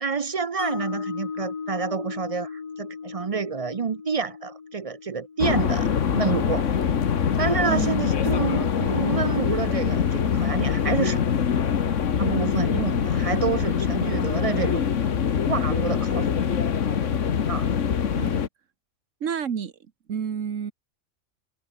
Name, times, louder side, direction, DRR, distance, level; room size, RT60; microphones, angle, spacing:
voice 1, 0.0-5.9 6.1-6.7 7.4-11.2 12.2-14.8 15.5-16.3 17.5-17.7, right 5 dB, 45° right, 0.5 m, -28 dB
Mallet percussion, 0.6-6.7, left 5 dB, 35° left, 0.8 m, -37 dB
sound 1, 5.4-18.5, left 7 dB, 80° left, 1.6 m, -24 dB
voice 2, 7.6-8.1 18.2-18.4 19.2-20.7, right 7 dB, 90° right, 1.6 m, -30 dB
omnidirectional pair, 1.3 m